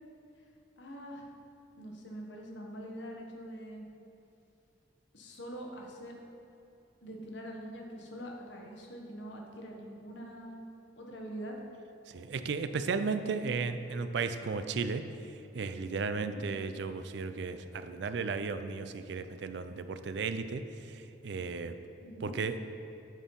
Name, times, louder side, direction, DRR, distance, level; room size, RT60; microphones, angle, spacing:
voice 1, 0.8-1.3 1.8-3.9 5.1-6.2 7.0-10.6 11.0-11.5 16.1-16.4 22.0-22.4, equal, 75° left, 0 dB, 1.1 m, -44 dB
voice 2, 12.1-15.0 15.5-20.6 20.9-21.7 22.2-22.6, right 4 dB, 65° right, 10 dB, 0.4 m, -34 dB
9.0 x 4.3 x 5.4 m, 2.8 s
head